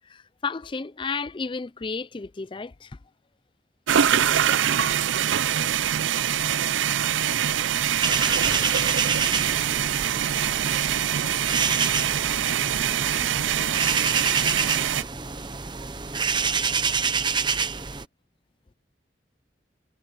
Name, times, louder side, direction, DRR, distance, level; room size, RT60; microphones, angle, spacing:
voice 1, 0.0-2.9, left 4 dB, 25° left, 0.4 m, -32 dB
sound 1, 3.9-15.0, right 9 dB, 85° right, 0.5 m, -24 dB
sound 2, 8.0-18.0, right 5 dB, 25° right, 0.9 m, -27 dB
voice 2, 13.2-15.6, right 1 dB, 55° right, 6.9 m, -50 dB
head